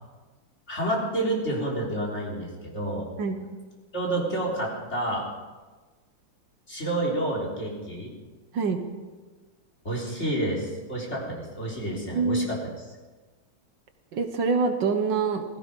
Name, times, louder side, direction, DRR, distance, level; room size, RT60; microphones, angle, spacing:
voice 1, 0.7-3.1 3.9-5.2 6.7-8.1 9.8-12.6, right 1 dB, 35° left, -2 dB, 4.0 m, -29 dB
voice 2, 12.1-12.5 14.1-15.4, right 4 dB, 70° right, 7 dB, 1.8 m, -25 dB
16.5 x 15.0 x 5.3 m, 1.3 s
omnidirectional pair, 2.1 m